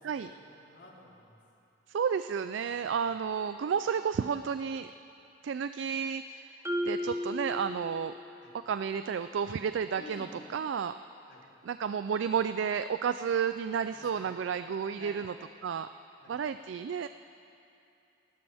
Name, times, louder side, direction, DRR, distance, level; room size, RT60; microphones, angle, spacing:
voice 1, 0.0-1.4 2.7-2.9 8.4-8.5 9.9-10.3 11.3-11.4 14.0-14.3 15.0-15.2 16.2-16.3, left 2 dB, 70° left, -4 dB, 3.9 m, -51 dB
voice 2, 1.9-4.9 5.4-6.5 6.8-8.1 8.7-10.9 11.6-15.3 15.6-15.9 16.3-17.1, right 7 dB, 75° right, 11 dB, 0.3 m, -31 dB
Marimba xylophone, 6.6-8.4, left 1 dB, 15° right, 1.3 m, -34 dB
29.5 x 12.5 x 3.5 m, 2.7 s
head